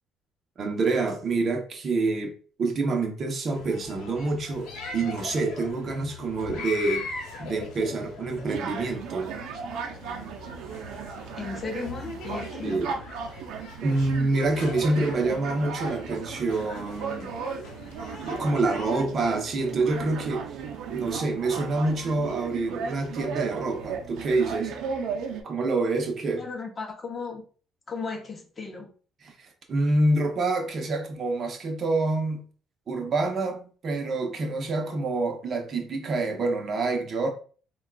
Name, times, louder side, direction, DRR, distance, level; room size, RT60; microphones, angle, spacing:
voice 1, 0.6-2.3 2.6-9.3 12.6-13.0 13.8-17.3 18.2-20.5 20.9-24.7 25.4-26.4 29.4-32.5 32.9-37.3, right 3 dB, 40° right, 0.7 m, -27 dB
sound 1, 3.5-18.9, left 4 dB, 75° left, 0.9 m, -41 dB
sound 2, 8.5-25.4, right 6 dB, 80° right, 0.5 m, -36 dB
voice 2, 11.4-12.8 26.4-27.4 27.9-28.9, left 4 dB, 25° left, 0.6 m, -35 dB
3.6 x 2.2 x 2.3 m
cardioid pair, 125°, 0 cm